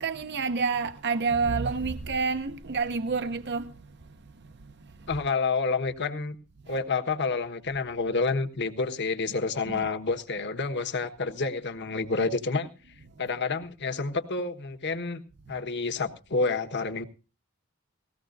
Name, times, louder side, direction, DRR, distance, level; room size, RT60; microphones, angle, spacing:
voice 1, 0.0-3.7 9.7-9.9, right 4 dB, 50° right, 0.7 m, -28 dB
voice 2, 5.1-6.4 6.7-12.7 13.2-15.2 15.5-17.0, left 4 dB, 55° left, 1.3 m, -29 dB
19.5 x 16.0 x 2.6 m
head